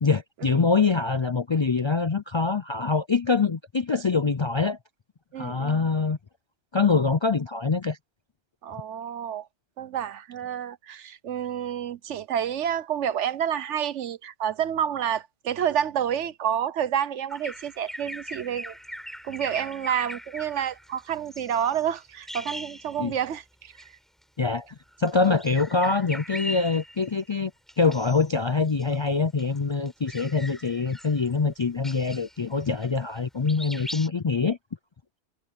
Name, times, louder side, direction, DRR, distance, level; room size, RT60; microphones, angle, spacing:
voice 1, 0.0-4.8 5.4-6.2 6.7-8.0 23.0-23.1 24.4-24.7 25.0-27.5 27.8-34.6, left 4 dB, 45° left, 0.3 m, -24 dB
voice 2, 5.3-5.8 8.6-9.5 9.8-18.7 19.2-23.7, right 9 dB, 85° right, 1.2 m, -29 dB
Bird vocalization bird call bird song, 17.3-23.4 23.7-23.9 24.9-27.2 27.7-28.3 28.7-33.2 33.5-34.1, equal, ahead, 7.5 m, -40 dB
omnidirectional pair, 1.2 m